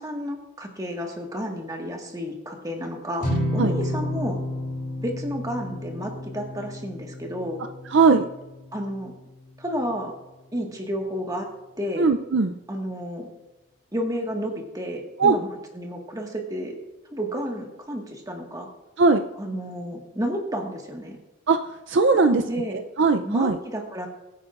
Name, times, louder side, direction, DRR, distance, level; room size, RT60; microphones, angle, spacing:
voice 1, 0.0-4.4 5.0-7.6 8.7-9.1 9.6-10.1 10.5-11.5 11.8-12.1 12.7-13.3 13.9-15.5 15.7-16.8 17.1-18.7 19.4-21.2 22.1-22.8 23.2-24.1, equal, 15° right, 1 dB, 1.6 m, -31 dB
sound 1, 3.2-9.6, left 1 dB, 35° left, 2.8 m, -31 dB
voice 2, 7.9-8.3 12.0-12.5 15.2-15.4 19.0-19.3 21.5-22.4 22.7-23.6, right 4 dB, 55° right, 8 dB, 0.5 m, -20 dB
22.5 x 9.3 x 2.5 m, 1.1 s
head